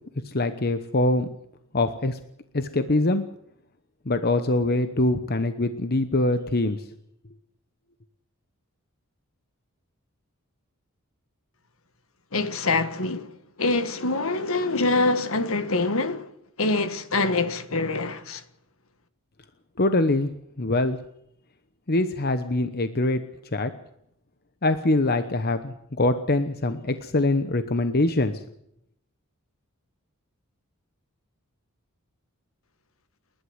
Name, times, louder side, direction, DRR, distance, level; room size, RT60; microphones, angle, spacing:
voice 1, 0.2-1.3 1.7-2.2 2.5-3.2 4.1-6.8 19.8-20.3 20.6-21.0 21.9-23.2 23.5-23.7 24.6-28.4, left 2 dB, 45° left, 1.0 m, -23 dB
voice 2, 12.3-13.3 13.6-16.3 16.6-18.4, left 3 dB, 65° left, 1.6 m, -25 dB
29.5 x 11.5 x 8.0 m
head